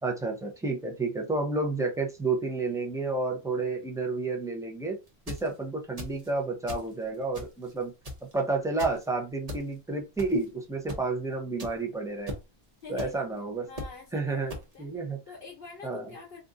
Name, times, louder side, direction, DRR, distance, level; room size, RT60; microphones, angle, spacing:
voice 1, 0.0-5.0 5.3-7.9 8.3-12.3 12.9-13.6 14.1-14.5 14.8-15.2 15.8-16.1, right 3 dB, 5° right, 0 dB, 0.5 m, -30 dB
sound 1, 5.1-5.5 6.0-6.3 6.7-6.9 7.3-7.7 8.0-8.3 8.8-9.0 9.5-9.6 10.2-10.4 10.9-11.0 11.6-11.7 12.3-12.4 13.0-13.1 13.8-13.9 14.5-14.6, equal, 40° right, 0.9 m, -37 dB
voice 2, 12.8-13.3 13.7-14.9 15.3-16.4, left 5 dB, 65° left, -1 dB, 0.9 m, -45 dB
2.6 x 2.5 x 3.6 m, 0.27 s
omnidirectional pair, 1.1 m